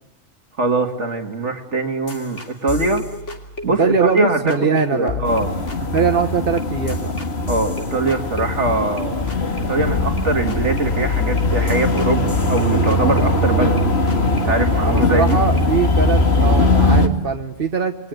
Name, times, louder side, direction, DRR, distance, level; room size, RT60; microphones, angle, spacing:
voice 1, 0.6-3.1 3.6-5.5 7.5-9.2 9.7-13.8 14.4-15.4, right 3 dB, 70° right, 4 dB, 2.5 m, -22 dB
sound 1, 2.1-4.2 4.5-4.8 5.1-9.0 9.3-9.6 9.9-13.8 14.1-14.4 14.7-16.2, left 5 dB, 75° left, 3.3 m, -33 dB
voice 2, 3.8-5.3 5.9-7.1 14.8-18.1, right 5 dB, 50° right, 4 dB, 1.7 m, -21 dB
sound 2, 5.2-17.1, left 2 dB, 60° left, 2.4 m, -20 dB
29.5 x 22.0 x 9.2 m, 0.85 s
omnidirectional pair, 1.2 m